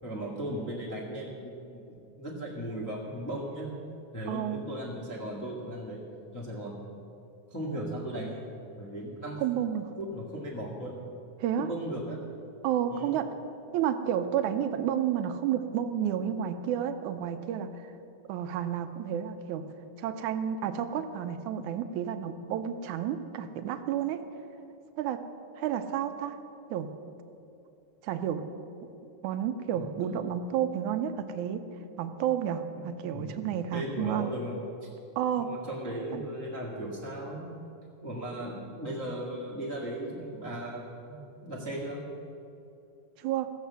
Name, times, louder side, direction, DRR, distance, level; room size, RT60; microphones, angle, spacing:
voice 1, 0.0-3.7 4.1-6.0 6.3-6.8 7.5-8.5 8.8-9.4 10.0-10.9 11.6-12.2 12.9-13.1 29.7-30.1 32.7-33.3 33.7-34.6 34.8-34.9 35.4-37.4 38.0-41.2 41.4-42.0, right 1 dB, 10° left, -6 dB, 1.0 m, -37 dB
voice 2, 4.3-4.6 9.4-9.9 11.4-11.7 12.6-13.3 13.7-17.9 18.3-19.7 20.0-24.2 25.0-25.2 25.6-26.4 26.7-26.9 28.0-28.5 29.2-31.6 32.0-34.3 35.2-35.5 36.1-36.2 43.2-43.5, right 9 dB, 90° right, 8 dB, 2.2 m, -31 dB
16.5 x 7.4 x 6.9 m, 2.7 s
omnidirectional pair, 3.4 m